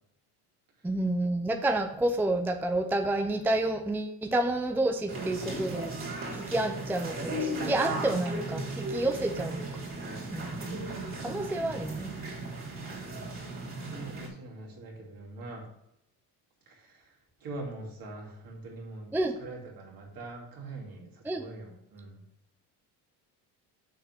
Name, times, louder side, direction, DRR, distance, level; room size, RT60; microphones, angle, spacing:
voice 1, 0.8-5.9 6.3-9.7 10.3-10.8 11.2-12.1 19.1-19.4 21.3-21.4, right 2 dB, 5° right, 6 dB, 0.5 m, -29 dB
sound 1, 5.1-14.3, right 2 dB, 30° right, 3.0 m, -36 dB
voice 2, 12.9-15.6 16.7-17.1 17.4-22.2, right 2 dB, 55° right, -1 dB, 2.7 m, -44 dB
6.9 x 3.8 x 6.2 m, 0.80 s
cardioid pair, 90°, 41 cm